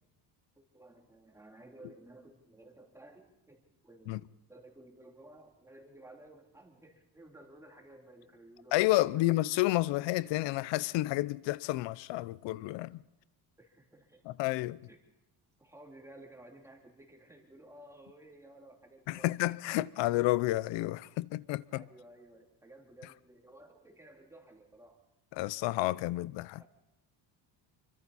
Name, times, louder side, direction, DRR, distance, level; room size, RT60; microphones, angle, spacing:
voice 1, 0.6-8.8 9.2-9.3 13.6-14.2 14.9-15.0 15.6-19.3 21.7-25.0 26.5-26.7, right 1 dB, 5° right, 3.0 m, -55 dB
voice 2, 8.7-13.0 14.3-14.8 19.1-21.8 25.4-26.6, left 18 dB, 90° left, 0.7 m, -30 dB
26.5 x 24.5 x 4.2 m
cardioid pair, 150°, 43 cm